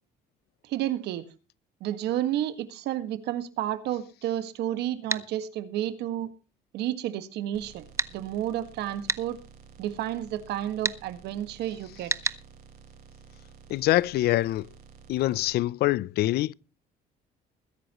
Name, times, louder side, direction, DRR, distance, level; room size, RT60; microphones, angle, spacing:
voice 1, 0.6-1.3 1.8-6.3 6.7-7.8 8.1-9.4 9.8-12.3, right 12 dB, 80° right, 1.7 m, -31 dB
sound 1, 5.1-5.3 8.0-8.1 9.1-9.2 10.8-11.0 12.1-12.4, right 3 dB, 15° right, 0.8 m, -28 dB
sound 2, 7.5-15.5, right 6 dB, 60° right, 4.7 m, -52 dB
voice 2, 13.7-14.7 15.1-16.5, left 16 dB, 70° left, 0.6 m, -24 dB
21.5 x 10.5 x 3.0 m
cardioid pair, 110°, 17 cm